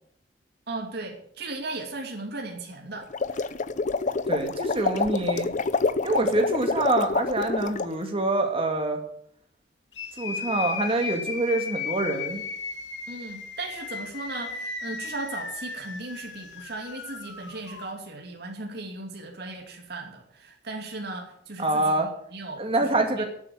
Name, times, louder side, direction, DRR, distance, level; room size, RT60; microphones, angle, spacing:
voice 1, 0.7-3.5 13.1-23.2, right 2 dB, 65° right, 1 dB, 2.7 m, -37 dB
sound 1, 3.0-7.9, left 4 dB, 45° left, 0.6 m, -27 dB
voice 2, 4.3-5.5 6.0-9.0 10.2-12.4 21.6-22.1 22.6-23.2, right 2 dB, 30° right, 4 dB, 2.3 m, -25 dB
sound 2, 9.9-17.9, left 5 dB, 85° left, 2.1 m, -36 dB
12.0 x 7.9 x 8.5 m, 0.67 s
head